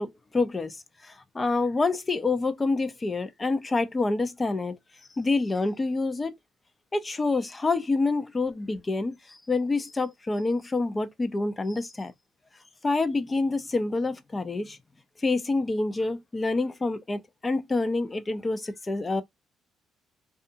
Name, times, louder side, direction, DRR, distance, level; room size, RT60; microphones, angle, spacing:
voice 1, 0.0-4.8 5.2-6.3 6.9-12.1 12.8-14.8 15.2-19.2, left 3 dB, 30° left, 0.6 m, -27 dB
2.6 x 2.4 x 2.5 m
supercardioid pair, 60°, 0 cm